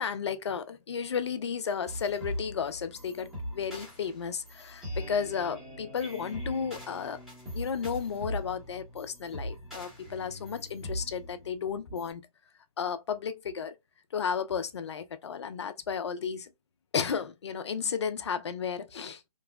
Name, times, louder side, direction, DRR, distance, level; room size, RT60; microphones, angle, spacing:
voice 1, 0.0-7.2 7.5-12.2 12.8-13.7 14.1-16.5 16.9-19.2, left 6 dB, 45° left, 0.4 m, -33 dB
sound 1, 1.9-12.1, equal, ahead, 0.9 m, -40 dB
2.9 x 2.0 x 2.2 m
hypercardioid pair, 160°, 20 cm